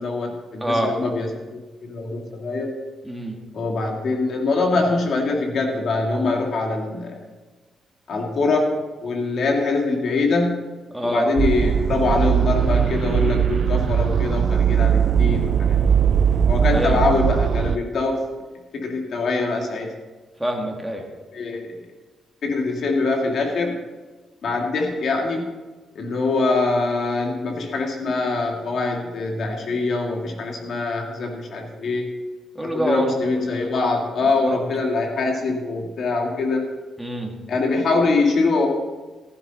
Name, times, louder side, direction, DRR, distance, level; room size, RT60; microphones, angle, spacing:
voice 1, 0.0-2.7 3.5-7.2 8.1-10.6 11.0-15.8 16.5-18.2 18.7-19.9 21.3-21.8 22.4-23.8 24.4-25.5 26.0-32.1 32.7-36.7 37.5-38.7, left 3 dB, 55° left, 1 dB, 2.1 m, -23 dB
voice 2, 0.6-1.0 3.0-3.4 10.9-11.3 16.7-17.0 20.4-21.0 32.6-33.1 34.4-34.6 37.0-37.3, equal, 5° right, 1 dB, 2.0 m, -25 dB
sound 1, 11.4-17.8, right 8 dB, 55° right, 0.4 m, -19 dB
15.0 x 11.0 x 4.1 m, 1.3 s
cardioid pair, 125°, 0 cm